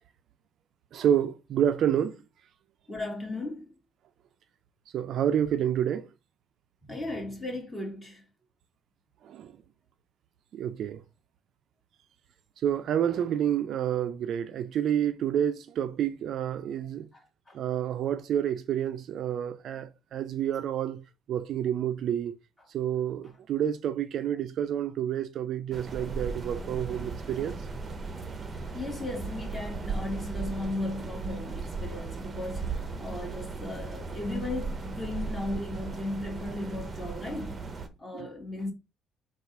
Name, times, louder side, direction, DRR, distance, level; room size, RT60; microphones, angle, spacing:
voice 1, 0.9-2.2 4.9-6.1 9.2-9.5 10.5-11.0 12.6-17.1 17.5-21.0 21.3-22.4 22.7-27.6 38.1-38.3, right 9 dB, 65° right, 0.4 m, -29 dB
voice 2, 2.9-3.7 6.8-8.2 17.1-17.2 17.5-17.6 28.7-37.6 38.0-38.7, left 2 dB, 15° left, 1.9 m, -36 dB
sound 1, 25.7-37.9, right 4 dB, 30° right, 0.8 m, -37 dB
3.9 x 2.4 x 4.6 m
cardioid pair, 95°, 0 cm